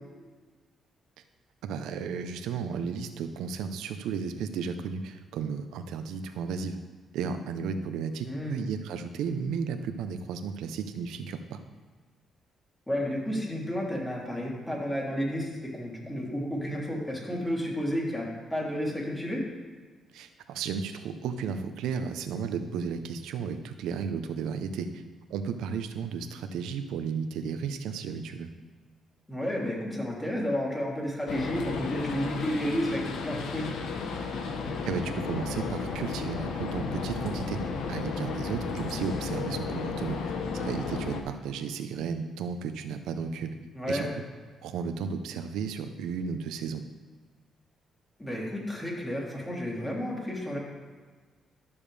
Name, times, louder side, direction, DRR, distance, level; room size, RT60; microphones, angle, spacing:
voice 1, 1.6-6.8 7.1-11.6 20.1-25.0 25.3-28.5 34.9-37.6 37.9-40.2 40.5-43.6 43.9-44.1 44.6-46.8, right 6 dB, 90° right, 9 dB, 0.7 m, -34 dB
voice 2, 8.2-8.6 12.9-19.4 29.3-33.7 43.7-44.1 48.2-50.6, equal, 15° left, -4 dB, 3.1 m, -31 dB
sound 1, 31.3-41.2, left 4 dB, 80° left, 1.0 m, -33 dB
12.5 x 7.0 x 3.4 m, 1.4 s
cardioid pair, 90°, 0 cm